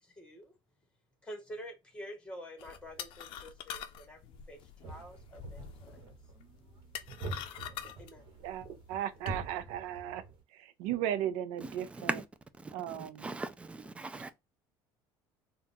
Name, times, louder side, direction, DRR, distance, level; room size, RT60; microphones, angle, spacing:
voice 1, 0.0-0.6 1.2-6.0 8.0-8.2, equal, 10° left, 1.5 m, -48 dB
sound 1, 2.6-9.4, left 10 dB, 60° left, 0.5 m, -46 dB
sound 2, 4.8-10.4, right 3 dB, 50° right, 1.2 m, -45 dB
voice 2, 8.4-10.2 10.5-12.1 12.7-13.3, right 11 dB, 85° right, 0.5 m, -36 dB
voice 3, 11.6-12.2 12.9-14.3, right 3 dB, 10° right, 0.4 m, -39 dB
3.6 x 2.4 x 2.7 m
cardioid pair, 120°, 10 cm